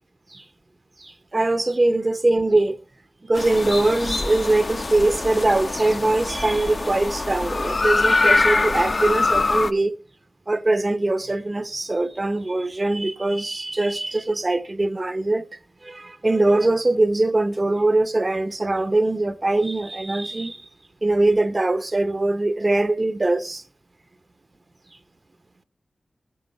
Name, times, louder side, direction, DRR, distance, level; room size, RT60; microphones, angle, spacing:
voice 1, 1.0-2.8 3.3-10.0 10.5-15.5 15.8-20.6 21.0-23.6, right 2 dB, 35° right, 0.7 m, -22 dB
sound 1, 3.4-9.7, left 3 dB, 50° left, 0.7 m, -23 dB
15.0 x 9.4 x 3.2 m
wide cardioid pair, 65°, 0 cm